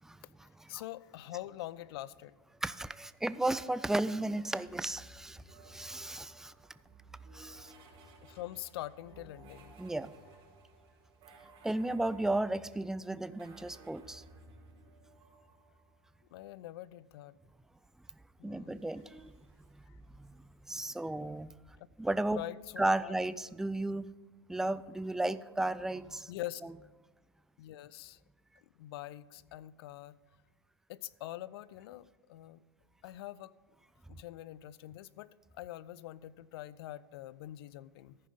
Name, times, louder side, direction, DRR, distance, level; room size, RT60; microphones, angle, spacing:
voice 1, 0.7-2.4 7.8-7.9 8.2-9.8 16.3-17.3 18.4-18.9 19.9-20.0 21.8-21.9 22.3-23.1 26.3-26.6 27.6-28.2 28.6-30.2 30.9-32.6 33.0-33.5 34.1-38.2, left 14 dB, 65° left, 19 dB, 0.4 m, -44 dB
voice 2, 2.6-6.5 7.3-7.7 9.8-10.1 11.6-14.2 18.4-19.3 20.2-20.3 20.7-21.5 22.0-22.4 22.8-24.1 24.5-26.3, right 2 dB, 5° right, 15 dB, 0.3 m, -34 dB
sound 1, 4.0-16.5 18.6-20.2, right 2 dB, 45° right, 3.5 m, -57 dB
14.0 x 5.1 x 5.5 m, 1.2 s
hypercardioid pair, 100°, 14 cm